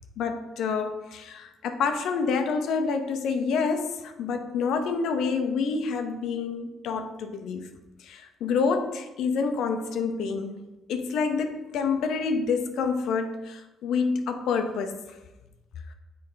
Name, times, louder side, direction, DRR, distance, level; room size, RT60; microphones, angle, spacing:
voice 1, 0.2-7.7 8.0-10.6 10.9-15.0, left 5 dB, 80° left, 7 dB, 0.7 m, -28 dB
6.8 x 3.8 x 5.5 m, 1.0 s
cardioid pair, 90°, 0 cm